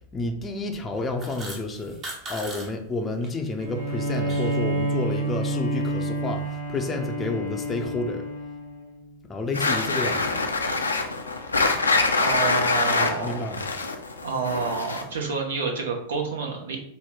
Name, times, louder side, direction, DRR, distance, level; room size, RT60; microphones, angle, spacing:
voice 1, 0.1-2.0 2.3-8.3 9.3-10.4 13.0-13.7, left 2 dB, 20° left, 3 dB, 0.5 m, -30 dB
sound 1, 0.9-2.7 2.9-3.3 3.7-4.6, right 1 dB, 25° right, 0.8 m, -38 dB
Bowed string instrument, 3.6-9.0, right 1 dB, 85° right, 1.1 m, -29 dB
sound 2, 9.5-15.2, left 3 dB, 75° left, 0.4 m, -24 dB
voice 2, 12.2-13.6 14.2-16.8, right 4 dB, 65° right, 2 dB, 0.8 m, -29 dB
4.3 x 2.2 x 3.7 m, 0.68 s
figure-of-eight pair, 90°, 0 cm